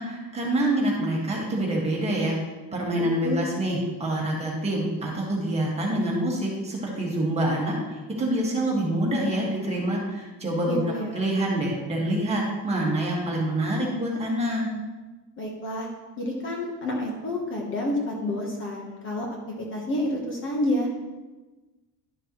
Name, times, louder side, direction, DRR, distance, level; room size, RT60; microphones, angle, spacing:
voice 1, 0.0-2.4 2.7-10.8 11.1-14.7, right 1 dB, 15° right, -4 dB, 1.8 m, -26 dB
voice 2, 2.9-3.5 10.7-11.2 15.4-15.9 16.2-19.3 19.7-20.9, left 1 dB, 30° left, -1 dB, 1.2 m, -29 dB
11.5 x 6.8 x 3.1 m, 1.2 s
cardioid pair, 180°, 37 cm